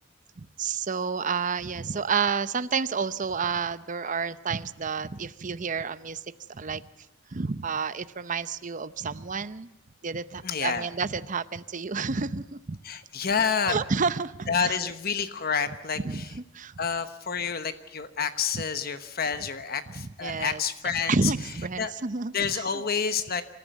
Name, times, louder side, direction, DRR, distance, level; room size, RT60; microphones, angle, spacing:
voice 1, 0.4-6.2 6.5-6.8 7.3-9.7 10.0-12.8 13.7-14.8 16.0-16.8 18.5-18.6 20.0-20.6 21.1-22.8, right 5 dB, 40° right, 14 dB, 0.7 m, -30 dB
voice 2, 10.4-10.9 12.8-13.8 14.5-16.3 16.8-21.3 21.8-21.9 22.3-23.4, left 6 dB, 50° left, 10 dB, 1.1 m, -29 dB
26.5 x 14.5 x 9.3 m, 0.97 s
head